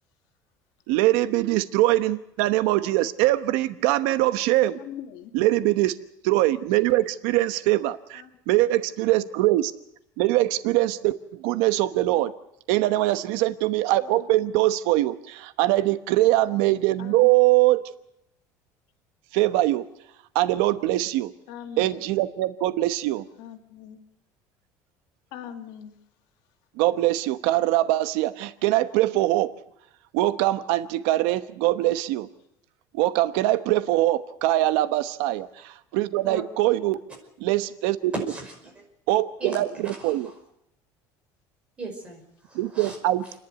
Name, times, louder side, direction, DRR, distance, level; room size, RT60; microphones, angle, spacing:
voice 1, 0.9-4.8 5.3-6.0 6.2-9.6 10.2-12.3 12.7-17.8 19.3-19.8 20.3-21.3 21.8-23.3 26.8-29.5 30.1-32.3 32.9-37.0 37.4-38.1 39.1-40.3 42.5-43.4, right 16 dB, 75° right, 12 dB, 1.0 m, -22 dB
voice 2, 4.8-5.3 8.1-8.3 12.1-12.3 13.9-14.2 17.0-17.3 21.5-22.0 23.4-24.0 25.3-26.0, left 9 dB, 65° left, 6 dB, 2.3 m, -41 dB
voice 3, 38.1-38.7 39.4-40.3 41.8-43.0, right 3 dB, 15° right, 2 dB, 5.2 m, -36 dB
29.0 x 11.0 x 9.5 m, 0.80 s
cardioid pair, 175°, 8 cm